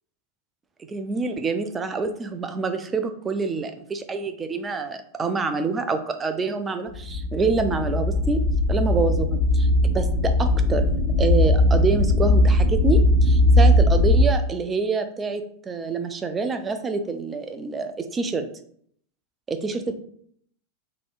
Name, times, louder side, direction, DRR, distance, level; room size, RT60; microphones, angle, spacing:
voice 1, 0.9-8.4 8.7-10.9 11.2-18.5 19.5-20.0, right 4 dB, 20° right, 8 dB, 0.4 m, -27 dB
sound 1, 6.9-14.2, left 1 dB, 40° left, 1.1 m, -19 dB
4.0 x 2.9 x 2.4 m, 0.62 s
figure-of-eight pair, 90°, 0 cm